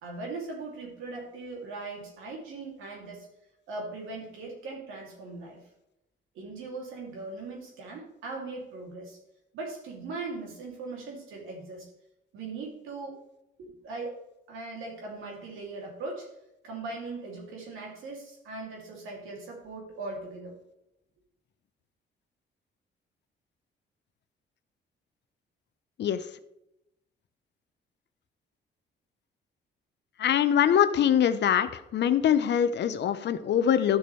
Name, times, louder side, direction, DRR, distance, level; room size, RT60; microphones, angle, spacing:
voice 1, 0.0-3.3 3.7-5.6 6.3-9.2 9.5-11.9 12.3-13.2 13.6-14.2 14.5-16.3 16.6-20.6, right 3 dB, 85° right, 0 dB, 2.6 m, -39 dB
voice 2, 30.2-34.0, left 9 dB, 60° left, 12 dB, 0.7 m, -23 dB
12.5 x 6.8 x 3.2 m, 0.86 s
cardioid pair, 90°, 20 cm